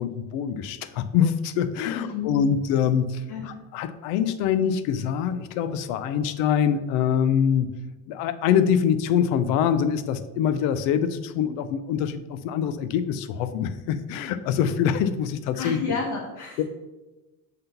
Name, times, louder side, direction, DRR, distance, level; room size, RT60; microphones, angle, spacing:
voice 1, 0.0-7.7 8.1-15.8 16.6-16.7, left 8 dB, 90° left, 11 dB, 0.7 m, -24 dB
voice 2, 1.8-2.5 3.3-3.5 15.5-16.6, left 5 dB, 55° left, 0 dB, 1.0 m, -30 dB
5.6 x 3.8 x 5.6 m, 1.1 s
cardioid pair, 165°, 44 cm